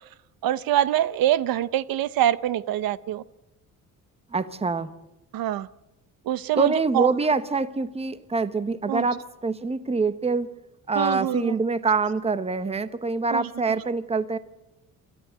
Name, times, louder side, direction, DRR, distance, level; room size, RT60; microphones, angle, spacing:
voice 1, 0.4-3.2 5.3-5.7 6.3-7.1 8.9-9.2 11.0-11.6 13.3-13.8, right 12 dB, 75° right, 16 dB, 0.7 m, -25 dB
voice 2, 4.3-4.9 6.6-10.5 10.9-14.4, right 4 dB, 15° right, 13 dB, 1.0 m, -25 dB
27.5 x 13.0 x 7.9 m, 0.96 s
cardioid pair, 130°, 35 cm